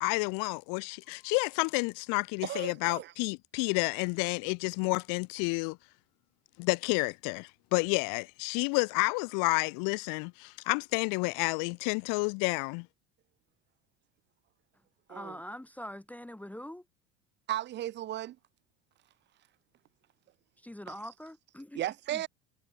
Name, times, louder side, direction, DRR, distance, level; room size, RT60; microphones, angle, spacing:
voice 1, 0.0-5.8 6.6-12.9, left 33 dB, 65° left, 0.8 m, -30 dB
voice 2, 2.4-3.1 15.1-15.4 17.5-18.4 21.7-22.3, right 13 dB, 30° right, 0.4 m, -35 dB
voice 3, 15.1-16.8 20.6-21.8 22.1-22.2, equal, 5° left, 1.1 m, -43 dB
supercardioid pair, 100°, 36 cm